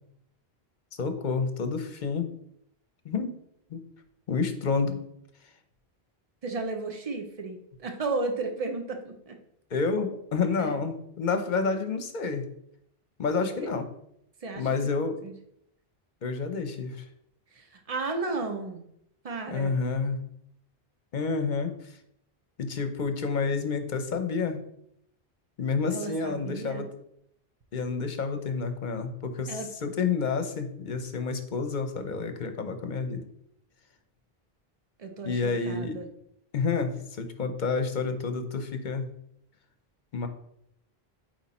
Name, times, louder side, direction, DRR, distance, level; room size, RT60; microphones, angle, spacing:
voice 1, 1.0-2.3 3.0-3.3 3.7-3.8 4.3-5.0 9.7-12.5 13.2-13.9 14.6-15.2 16.2-17.0 19.5-20.2 21.1-21.7 22.6-24.6 25.6-26.9 27.7-33.3 35.2-36.0 36.5-39.1 40.1-40.3, left 4 dB, 50° left, 8 dB, 0.8 m, -29 dB
voice 2, 6.4-9.4 10.5-10.8 13.6-13.7 14.4-15.0 15.2-15.3 17.5-18.8 19.2-19.8 25.9-26.8 29.5-29.7 35.0-36.1, right 3 dB, 40° right, 5 dB, 0.9 m, -34 dB
8.4 x 3.1 x 4.2 m, 0.73 s
omnidirectional pair, 1.1 m